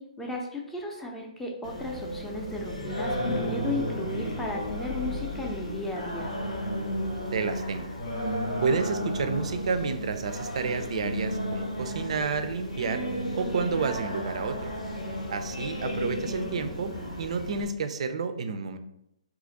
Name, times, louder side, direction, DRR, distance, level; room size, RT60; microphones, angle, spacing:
voice 1, 0.0-6.3, left 2 dB, 5° left, 0 dB, 0.5 m, -35 dB
Singing, 1.6-17.6, equal, 85° left, 1.1 m, -33 dB
voice 2, 7.3-7.9 8.6-13.0 13.3-14.7 15.3-18.8, right 5 dB, 60° right, 9 dB, 0.4 m, -30 dB
2.8 x 2.4 x 3.8 m, 0.82 s
figure-of-eight pair, 135°, 4 cm